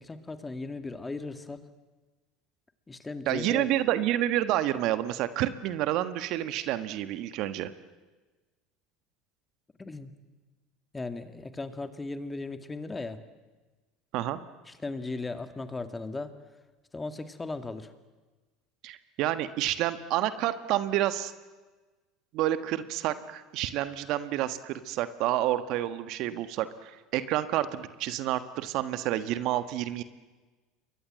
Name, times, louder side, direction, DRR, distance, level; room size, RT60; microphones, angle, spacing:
voice 1, 0.0-1.6 2.9-3.7 9.8-10.1 10.9-13.2 14.7-16.3 16.9-17.9, left 3 dB, 15° left, 9 dB, 2.2 m, -37 dB
voice 2, 3.3-7.7 14.1-14.4 18.8-21.3 22.3-30.0, right 13 dB, 60° right, 12 dB, 1.4 m, -29 dB
28.5 x 22.5 x 7.7 m, 1.3 s
hypercardioid pair, 80°, 0 cm